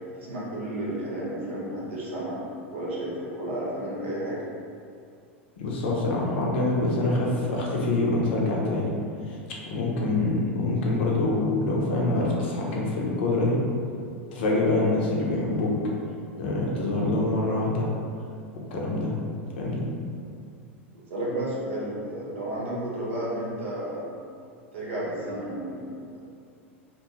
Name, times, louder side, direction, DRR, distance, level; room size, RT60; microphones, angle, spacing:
voice 1, 0.3-2.4 2.7-4.4 21.1-24.2 24.7-26.1, right 1 dB, 70° right, -6 dB, 0.9 m, -32 dB
voice 2, 5.6-8.9 9.3-9.4 9.7-13.6 14.3-15.7 16.4-17.9 18.7-19.2 19.6-19.9, left 2 dB, 60° left, -3 dB, 0.6 m, -25 dB
2.5 x 2.2 x 2.9 m, 2.4 s
figure-of-eight pair, 90°, 7 cm